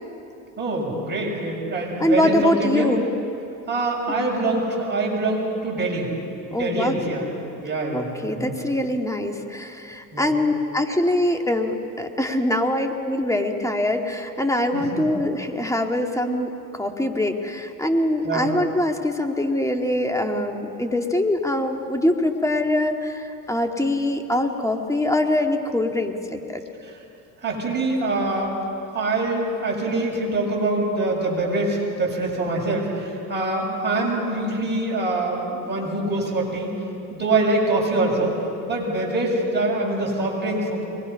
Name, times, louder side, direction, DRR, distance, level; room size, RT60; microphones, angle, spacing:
voice 1, 0.6-2.9 3.7-6.1 6.5-7.3 7.6-8.5 10.1-10.3 14.7-15.1 18.2-18.5 26.8-27.0 27.4-28.5 28.9-36.7 37.1-38.3 38.6-40.8, right 2 dB, 25° right, -3 dB, 7.1 m, -24 dB
voice 2, 2.0-3.1 6.5-7.0 7.9-26.6, left 1 dB, 5° left, 4 dB, 2.1 m, -23 dB
23.5 x 20.5 x 5.8 m, 2.8 s
hypercardioid pair, 80°, 43 cm